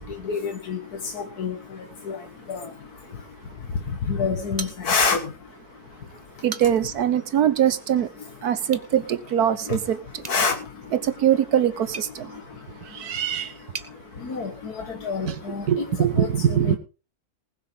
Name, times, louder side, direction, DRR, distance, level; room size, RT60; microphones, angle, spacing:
voice 1, 0.2-0.8 1.1-1.5 2.1-2.2 2.5-2.7 4.1-5.2 9.7-9.8 10.3-10.5 14.2-15.9 16.2-16.8, left 5 dB, 85° left, 2.1 m, -26 dB
sound 1, 4.6-5.3 5.7-5.8 6.3-7.0 8.6-8.9 10.2-13.9, right 4 dB, 30° right, 1.2 m, -40 dB
voice 2, 6.4-8.1 8.4-10.0 11.0-12.3 12.9-13.5 15.3-15.4 15.7-16.8, right 9 dB, 85° right, 1.6 m, -22 dB
20.0 x 6.7 x 5.3 m
omnidirectional pair, 1.6 m